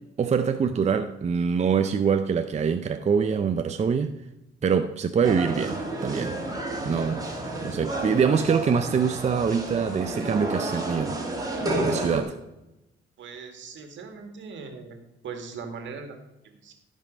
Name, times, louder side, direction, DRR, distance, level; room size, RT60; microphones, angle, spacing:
voice 1, 0.2-4.1 4.6-6.4 6.8-11.2 11.8-12.4, right 6 dB, 35° right, 7 dB, 0.6 m, -24 dB
sound 1, 5.2-12.2, right 1 dB, 20° right, 2.6 m, -31 dB
voice 2, 13.2-15.0 15.2-16.1 16.4-16.7, right 5 dB, 70° right, 5 dB, 2.0 m, -39 dB
14.0 x 5.6 x 5.2 m, 0.94 s
cardioid pair, 90°, 20 cm